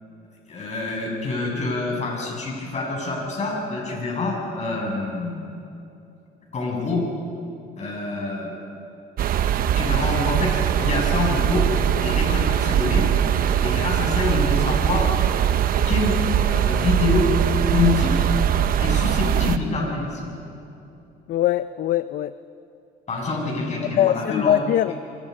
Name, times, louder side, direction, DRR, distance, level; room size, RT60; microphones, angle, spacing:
voice 1, 0.5-5.5 6.5-7.1 7.8-8.6 9.7-13.1 13.6-15.1 15.8-16.2 16.5-17.3 17.7-18.3 18.8-20.2 23.1-24.6, left 3 dB, 45° left, -1 dB, 7.9 m, -26 dB
sound 1, 9.2-19.6, right 10 dB, 60° right, 1.0 m, -21 dB
voice 2, 21.3-22.3 24.0-24.9, left 11 dB, 60° left, 13 dB, 0.6 m, -21 dB
29.5 x 24.0 x 5.5 m, 2.7 s
cardioid pair, 110°, 17 cm